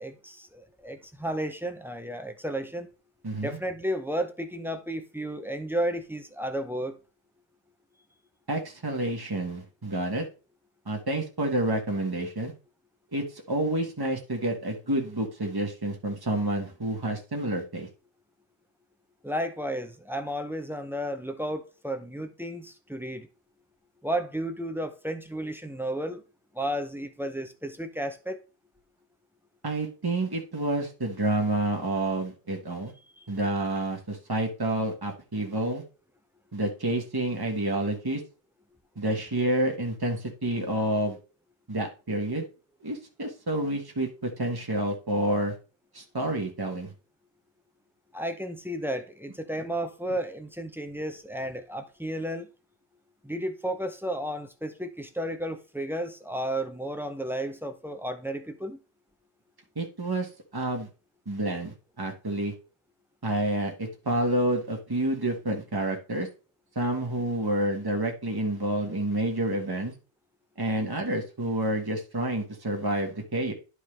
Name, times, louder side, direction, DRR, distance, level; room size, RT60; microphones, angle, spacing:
voice 1, 0.0-2.9 3.4-7.0 19.2-23.3 24.0-26.2 26.5-28.4 33.2-33.3 48.1-52.5 53.2-58.8, right 1 dB, 5° right, 0.6 m, -33 dB
voice 2, 3.2-3.6 8.5-10.2 10.9-12.5 13.1-17.9 29.6-32.9 33.3-35.8 36.5-38.2 38.9-41.2 41.7-42.4 42.8-45.5 45.9-46.9 59.7-60.9 61.3-62.5 63.2-66.3 66.7-69.9 70.6-73.5, right 1 dB, 20° right, 1.3 m, -29 dB
11.0 x 4.6 x 3.3 m
omnidirectional pair, 1.1 m